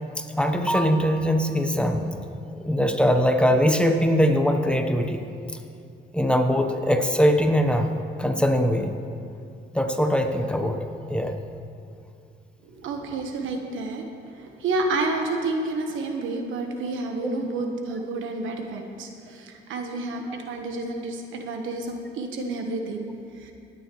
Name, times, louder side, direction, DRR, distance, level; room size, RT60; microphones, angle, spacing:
voice 1, 0.2-2.1 2.6-5.2 6.1-7.9 8.2-8.9 9.7-10.8 11.1-11.4, equal, 5° left, 5 dB, 0.9 m, -21 dB
voice 2, 12.6-14.0 14.4-23.1 23.4-23.5, right 2 dB, 80° right, 4 dB, 1.2 m, -30 dB
19.5 x 9.8 x 3.1 m, 2.5 s
cardioid pair, 90°, 20 cm